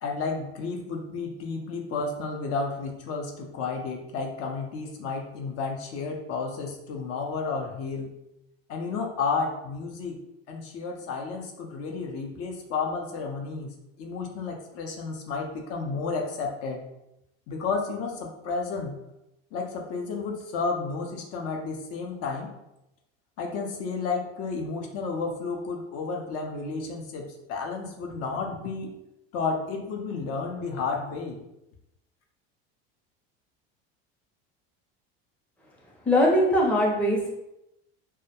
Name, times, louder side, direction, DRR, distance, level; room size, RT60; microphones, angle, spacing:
voice 1, 0.0-8.1 8.7-10.2 10.5-13.7 14.0-16.8 17.5-18.9 19.5-22.5 23.4-28.9 29.3-31.4, left 4 dB, 55° left, 1 dB, 0.5 m, -32 dB
voice 2, 36.1-37.3, left 1 dB, 5° left, -3 dB, 0.5 m, -21 dB
2.3 x 2.0 x 2.8 m, 0.86 s
supercardioid pair, 105°, 30 cm